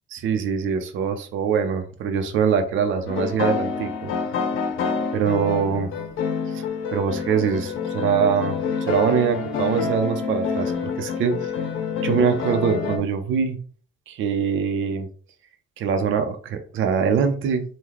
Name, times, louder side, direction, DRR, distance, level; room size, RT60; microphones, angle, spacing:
voice 1, 0.1-4.1 5.1-5.9 6.5-6.7 6.9-11.5 12.0-13.6 14.1-15.1 15.8-17.6, right 7 dB, 80° right, 7 dB, 0.6 m, -23 dB
sound 1, 3.1-13.0, left 5 dB, 90° left, 0.6 m, -27 dB
3.8 x 2.2 x 3.0 m, 0.42 s
cardioid pair, 90°, 20 cm